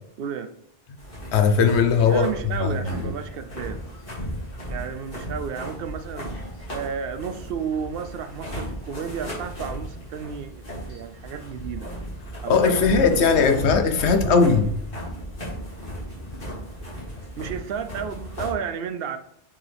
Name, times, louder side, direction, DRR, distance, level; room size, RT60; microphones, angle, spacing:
voice 1, 0.2-0.5 2.0-3.8 4.7-6.3 6.7-11.9 12.4-13.5 14.0-14.6 17.4-19.2, right 7 dB, 65° right, 0.7 m, -32 dB
sound 1, 1.0-18.5, equal, 50° left, 2.8 m, -35 dB
voice 2, 1.3-2.2 2.6-3.0 12.5-14.6, left 5 dB, 70° left, 1.1 m, -19 dB
7.3 x 4.7 x 3.4 m
omnidirectional pair, 1.2 m